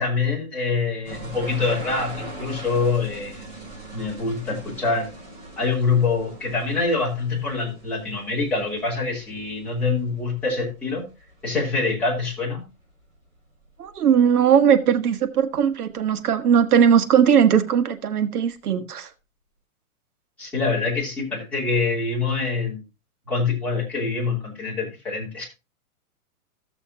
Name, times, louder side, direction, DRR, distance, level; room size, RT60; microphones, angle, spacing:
voice 1, 0.0-3.5 3.9-5.1 5.6-11.0 11.4-12.6 20.4-22.8 23.3-25.4, left 4 dB, 5° left, 2.9 m, -25 dB
sound 1, 1.0-12.4 12.7-13.2 13.6-14.4 14.7-14.8 15.6-15.7 15.9-16.0, right 1 dB, 15° right, 4.6 m, -41 dB
voice 2, 13.8-19.1, right 8 dB, 85° right, 1.4 m, -19 dB
14.5 x 6.9 x 2.8 m
hypercardioid pair, 175°, 44 cm